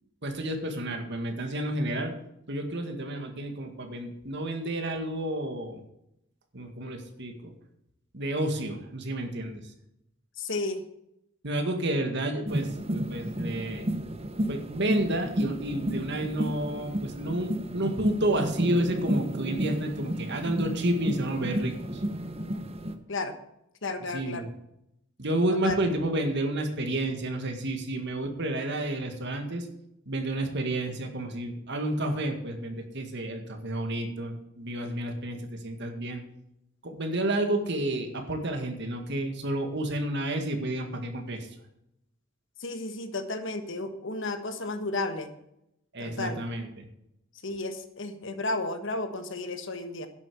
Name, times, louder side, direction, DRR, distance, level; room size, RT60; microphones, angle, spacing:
voice 1, 0.2-2.1 2.5-5.8 6.5-7.5 8.1-9.6 11.4-13.9 14.5-22.0 24.1-24.5 25.2-29.7 30.1-36.2 36.8-41.5 45.9-46.9, right 1 dB, 55° right, 4 dB, 2.0 m, -30 dB
voice 2, 10.4-10.8 23.1-23.4 23.8-24.5 25.6-25.8 42.6-45.3 46.0-46.4 47.4-50.1, left 2 dB, 60° left, 8 dB, 1.4 m, -33 dB
sound 1, 12.5-22.9, right 1 dB, 30° right, 1.0 m, -32 dB
11.0 x 8.2 x 6.9 m, 0.81 s
head